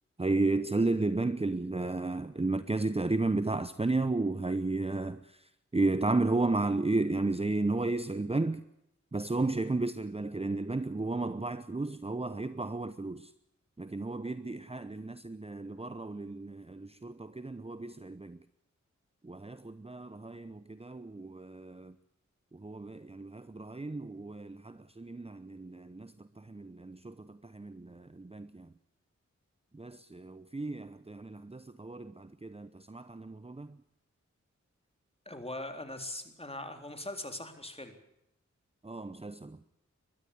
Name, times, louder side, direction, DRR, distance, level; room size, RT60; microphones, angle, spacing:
voice 1, 0.2-5.4 5.7-8.6 9.1-13.3 13.8-18.4 19.2-21.9 22.5-28.7 29.7-33.8 38.8-39.6, right 2 dB, 20° right, 0.9 m, -33 dB
voice 2, 35.3-38.0, left 1 dB, 20° left, 3.8 m, -41 dB
21.5 x 13.0 x 9.9 m
cardioid pair, 55°, 29 cm